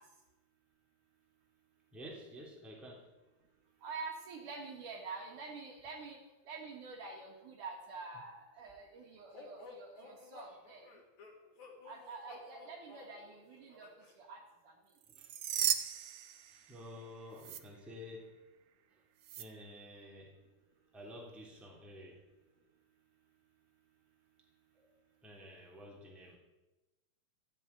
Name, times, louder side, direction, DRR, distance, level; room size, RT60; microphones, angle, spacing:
voice 1, 1.9-3.1 10.4-10.6 15.1-15.4 16.5-18.4 18.9-19.0 19.4-20.3 20.9-22.2 24.8-24.9 25.2-26.4, left 1 dB, ahead, -2 dB, 2.8 m, -51 dB
voice 2, 3.8-6.2 6.4-10.9 11.8-13.9 14.2-14.7, right 4 dB, 60° right, 1 dB, 3.5 m, -47 dB
sound 1, 9.3-14.2, left 3 dB, 55° left, 4.2 m, -54 dB
sound 2, 15.0-17.0 17.4-17.6 19.2-19.4, right 10 dB, 85° right, 1.4 m, -36 dB
15.0 x 7.6 x 10.0 m, 1.1 s
omnidirectional pair, 4.3 m